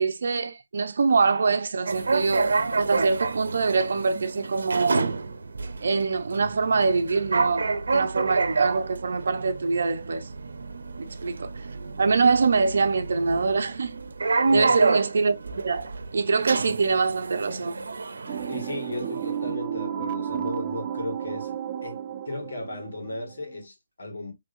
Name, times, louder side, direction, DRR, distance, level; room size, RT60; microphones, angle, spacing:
voice 1, 0.0-2.5 2.8-5.1 5.8-7.7 7.9-10.3 11.2-11.5 12.0-14.0 14.5-17.8, right 4 dB, 55° right, 0.8 m, -24 dB
sound 1, 1.9-19.4, right 4 dB, 85° right, 0.8 m, -29 dB
voice 2, 14.4-14.8 18.5-21.6 21.8-24.3, left 2 dB, 70° left, 2.0 m, -35 dB
sound 2, 18.3-23.6, right 9 dB, 20° right, 0.3 m, -32 dB
5.3 x 3.5 x 2.7 m
hypercardioid pair, 180°, 0 cm